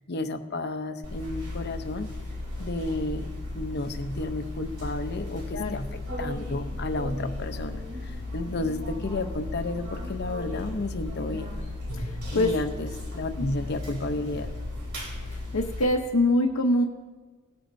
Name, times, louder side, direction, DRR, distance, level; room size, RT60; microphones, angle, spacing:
voice 1, 0.0-2.1 2.6-3.3 3.5-11.5 12.3-14.5, left 2 dB, 50° left, 8 dB, 0.7 m, -32 dB
sound 1, 1.0-15.8, left 2 dB, 50° right, 3.2 m, -35 dB
voice 2, 12.0-12.5 13.4-13.5 15.3-16.8, left 1 dB, 80° left, 0 dB, 0.9 m, -24 dB
18.0 x 9.2 x 2.7 m, 1.4 s
head